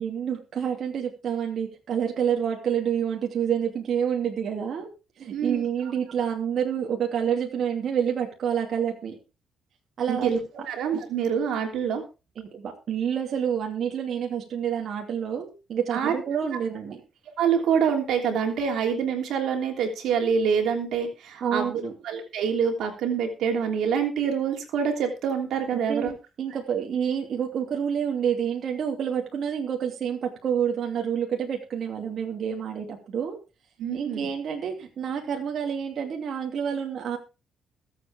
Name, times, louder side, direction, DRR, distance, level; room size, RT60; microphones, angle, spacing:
voice 1, 0.0-4.9 5.2-9.2 10.0-10.3 12.4-17.0 21.4-21.9 25.7-33.4 33.9-37.2, right 8 dB, 60° right, 1 dB, 2.8 m, -28 dB
voice 2, 10.1-10.4 10.7-12.0 15.9-16.1 17.4-26.1 33.8-34.3, right 7 dB, 80° right, 3 dB, 3.2 m, -26 dB
21.5 x 8.0 x 3.6 m, 0.29 s
cardioid pair, 90°, 0 cm